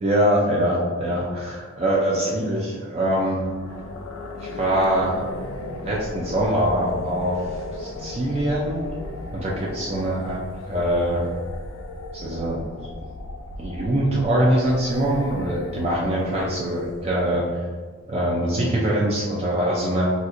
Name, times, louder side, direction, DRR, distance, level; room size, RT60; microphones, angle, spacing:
voice 1, 0.0-3.4 4.4-5.2 5.8-7.4 7.7-8.8 9.3-10.4 10.7-11.2 12.1-12.6 13.6-17.6 18.1-20.1, right 1 dB, 30° right, -5 dB, 0.4 m, -23 dB
sound 1, 3.3-17.4, left 2 dB, 75° left, 0.4 m, -36 dB
4.2 x 2.4 x 2.5 m, 1.5 s
head